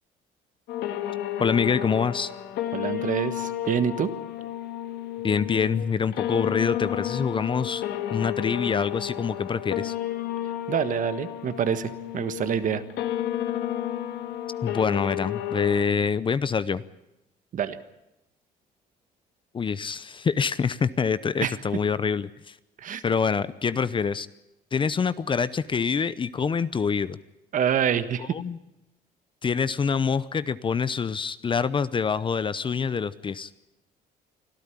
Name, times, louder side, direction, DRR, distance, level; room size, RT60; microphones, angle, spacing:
sound 1, 0.7-15.8, left 12 dB, 75° left, 1.8 m, -32 dB
voice 1, 1.4-2.3 5.2-7.8 8.1-9.9 14.6-16.8 19.5-22.6 23.0-24.3 24.7-27.2 28.3-28.6 29.4-33.5, left 6 dB, 30° left, 16 dB, 0.8 m, -26 dB
voice 2, 2.7-4.1 10.7-12.8 17.5-17.8 21.4-21.5 22.8-23.0 27.5-28.4, right 8 dB, 50° right, 12 dB, 1.5 m, -26 dB
25.0 x 13.5 x 10.0 m, 0.91 s
cardioid pair, 110°, 17 cm